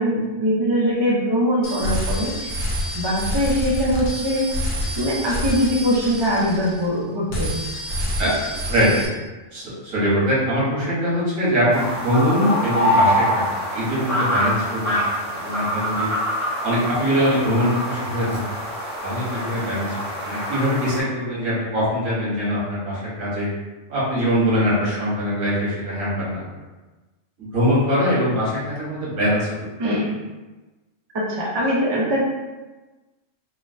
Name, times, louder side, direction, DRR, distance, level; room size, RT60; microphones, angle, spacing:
voice 1, 0.0-2.6 2.9-4.5 5.0-7.6 29.8-30.1 31.1-32.2, equal, 30° right, -5 dB, 0.4 m, -22 dB
sound 1, 1.6-7.0 7.3-9.1, equal, 65° left, 0.9 m, -27 dB
voice 2, 8.6-9.0 9.5-16.1 16.6-18.4 19.0-20.0 20.2-23.5 23.9-26.4 27.4-29.7, equal, 85° right, -8 dB, 1.6 m, -22 dB
sound 2, 11.7-21.0, equal, 10° right, 1.0 m, -25 dB
3.8 x 2.1 x 2.5 m, 1.2 s
omnidirectional pair, 1.3 m